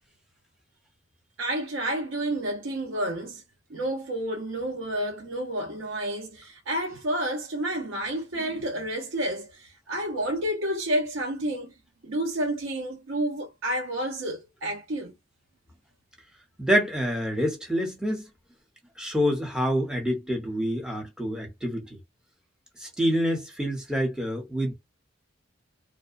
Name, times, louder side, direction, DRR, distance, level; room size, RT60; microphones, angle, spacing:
voice 1, 1.4-3.4 3.7-11.7 12.0-15.1, right 1 dB, 80° right, 0.7 m, -30 dB
voice 2, 16.6-18.3 19.0-22.0 22.8-24.7, equal, 5° right, 0.8 m, -27 dB
2.5 x 2.0 x 2.4 m
head